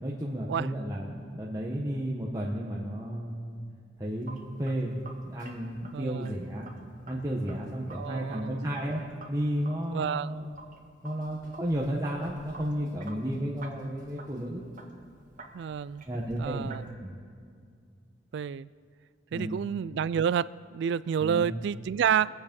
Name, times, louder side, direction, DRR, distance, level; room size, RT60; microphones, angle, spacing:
voice 1, 0.0-3.6 4.0-6.7 7.1-10.6 11.0-14.6 16.1-16.7 17.0-17.2 19.3-19.7 21.2-21.6, equal, 20° right, -4 dB, 1.2 m, -33 dB
Sink (filling or washing), 4.0-16.9, right 2 dB, 45° right, 1.8 m, -51 dB
voice 2, 5.9-6.3 7.9-8.6 9.9-10.3 15.5-16.0 16.4-16.8 18.3-18.7 19.3-22.3, right 7 dB, 65° right, 18 dB, 0.3 m, -29 dB
23.0 x 8.0 x 5.3 m, 2.2 s
head